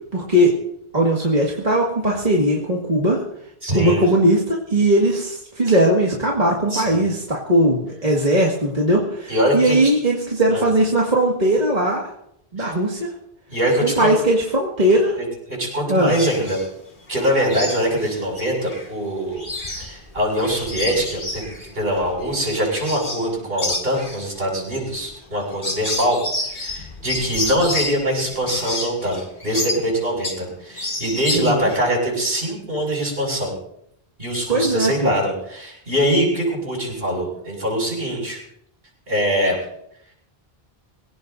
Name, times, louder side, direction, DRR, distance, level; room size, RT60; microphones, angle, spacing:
voice 1, 0.1-0.5 0.9-3.2 3.7-12.0 12.5-13.1 13.8-15.2 15.9-16.2 31.3-31.7 34.5-35.1, right 1 dB, 45° right, -3 dB, 2.1 m, -19 dB
voice 2, 3.6-4.0 5.7-5.8 6.7-7.0 9.3-10.0 10.5-10.6 12.6-12.7 13.5-14.1 15.2-16.6 17.1-19.4 19.8-26.2 26.5-29.2 29.4-33.5 34.2-38.4 39.1-39.6, equal, 65° right, -2 dB, 6.8 m, -23 dB
sound 1, 16.1-16.7 17.1-18.9 19.2-23.3 23.6-30.5 30.8-31.8, left 2 dB, 50° left, 2.2 m, -30 dB
24.5 x 17.5 x 2.7 m, 0.76 s
omnidirectional pair, 1.0 m